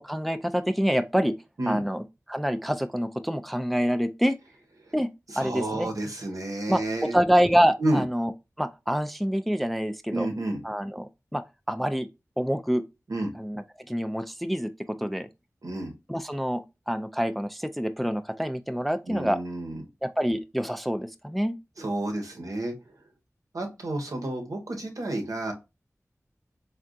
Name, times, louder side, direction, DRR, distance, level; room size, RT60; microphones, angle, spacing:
voice 1, 0.0-1.3 1.7-4.4 4.9-5.1 5.4-5.9 6.7-8.3 8.6-10.3 10.6-12.1 12.4-12.8 13.4-14.7 15.0-15.3 16.1-19.4 20.0-21.6, equal, ahead, 0.3 m, -26 dB
voice 2, 5.3-7.2 7.8-8.0 10.1-10.6 13.1-13.3 15.6-15.9 19.1-19.8 21.8-22.7 23.5-25.5, right 1 dB, 85° right, 0.9 m, -30 dB
3.6 x 2.3 x 2.4 m
wide cardioid pair, 45°, 6 cm